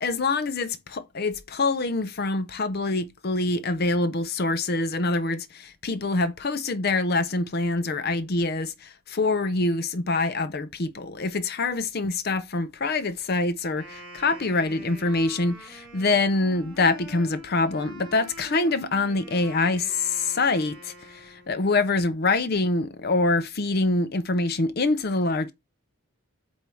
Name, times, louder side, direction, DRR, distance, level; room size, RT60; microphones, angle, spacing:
voice 1, 0.0-25.5, left 3 dB, 45° left, 0.6 m, -25 dB
Wind instrument woodwind instrument, 13.7-21.7, right 1 dB, 5° right, 1.9 m, -46 dB
8.1 x 2.8 x 4.4 m
head